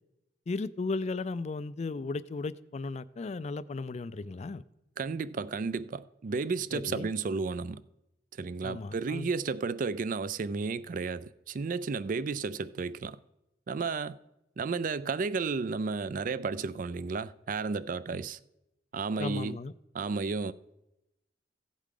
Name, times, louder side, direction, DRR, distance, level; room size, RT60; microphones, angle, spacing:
voice 1, 0.5-4.6 6.7-7.1 8.6-9.3 18.1-18.2 19.2-19.7, left 3 dB, 35° left, 0.4 m, -35 dB
voice 2, 5.0-7.8 8.4-13.2 13.7-14.2 14.6-18.4 18.9-19.6 19.9-20.5, right 4 dB, 45° right, 0.4 m, -33 dB
16.0 x 8.2 x 3.8 m
head